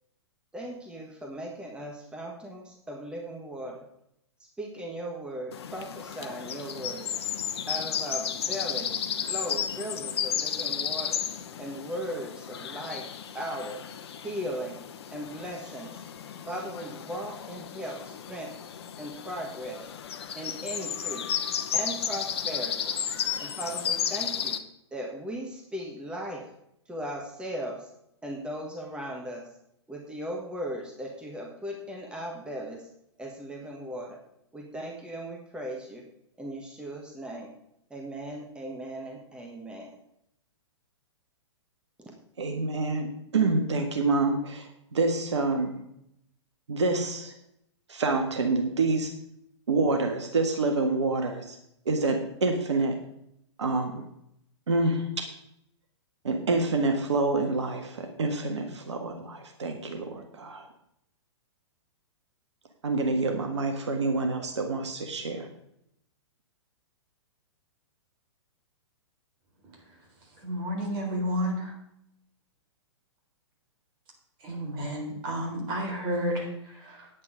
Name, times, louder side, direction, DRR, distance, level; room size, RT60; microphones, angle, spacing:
voice 1, 0.5-3.8 4.4-7.1 7.7-11.2 11.6-13.8 14.2-14.8 15.1-16.0 16.5-18.5 19.0-19.8 20.3-21.4 21.7-22.9 23.4-24.6 24.9-26.5 26.8-27.9 28.2-29.5 29.9-32.9 33.2-34.2 34.5-36.1 36.4-37.5 37.9-40.0 42.0-42.1, right 1 dB, 5° right, 0 dB, 1.5 m, -37 dB
sound 1, 5.5-24.6, left 8 dB, 60° left, 1.0 m, -33 dB
voice 2, 42.4-45.8 46.7-47.3 47.9-49.1 49.7-51.6 51.8-52.9 53.6-54.1 54.7-55.3 56.2-60.7 62.8-65.5, right 3 dB, 70° right, 4 dB, 1.6 m, -27 dB
voice 3, 70.4-71.7 74.4-77.1, equal, 35° right, 1 dB, 3.9 m, -31 dB
9.7 x 8.6 x 5.0 m, 0.77 s
figure-of-eight pair, 115°, 15 cm